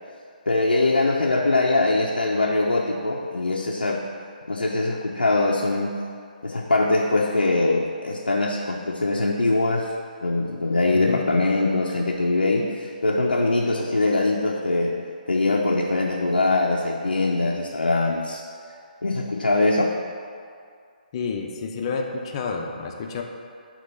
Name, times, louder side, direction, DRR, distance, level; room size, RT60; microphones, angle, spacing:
voice 1, 0.5-4.0 4.5-5.9 6.4-9.9 10.2-14.9 15.3-18.4 19.0-19.9, left 2 dB, 85° left, -2 dB, 0.6 m, -22 dB
voice 2, 10.9-11.3 21.1-23.2, left 4 dB, 35° left, 2 dB, 0.6 m, -30 dB
7.9 x 3.0 x 5.5 m, 2.3 s
figure-of-eight pair, 140°, 5 cm